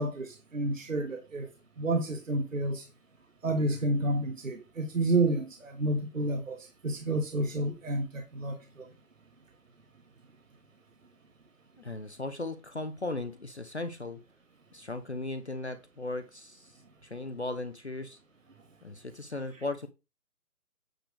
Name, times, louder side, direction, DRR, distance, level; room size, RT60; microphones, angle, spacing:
voice 1, 0.0-1.5 1.8-2.8 3.4-8.9, right 2 dB, 55° right, 1.4 m, -30 dB
voice 2, 11.8-14.2 14.7-16.7 17.0-18.2 18.8-19.9, left 2 dB, 45° left, 0.8 m, -37 dB
9.0 x 3.3 x 6.4 m
figure-of-eight pair, 175°, 46 cm